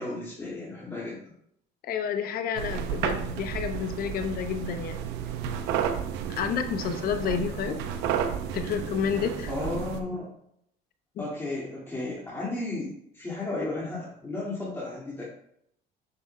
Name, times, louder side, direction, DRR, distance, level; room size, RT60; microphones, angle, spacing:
voice 1, 0.0-1.3 7.7-7.8 9.5-10.3 11.2-15.2, left 2 dB, 15° left, -7 dB, 2.3 m, -34 dB
voice 2, 1.8-5.0 6.3-7.8 8.5-9.5 11.2-11.3, left 7 dB, 60° left, 8 dB, 0.8 m, -30 dB
sound 1, 2.6-10.0, right 8 dB, 80° right, 0.7 m, -32 dB
7.7 x 6.0 x 2.3 m, 0.72 s
supercardioid pair, 95°, 18 cm